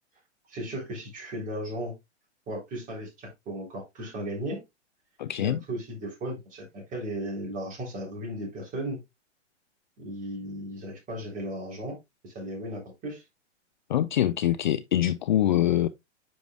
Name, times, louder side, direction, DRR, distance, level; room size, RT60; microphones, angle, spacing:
voice 1, 0.5-1.9 2.5-4.6 5.4-9.0 10.0-12.0 12.2-13.2, right 1 dB, 20° right, 3.6 m, -36 dB
voice 2, 5.2-5.6 13.9-15.9, left 12 dB, 40° left, 0.4 m, -24 dB
9.5 x 5.0 x 2.3 m
figure-of-eight pair, 115°, 36 cm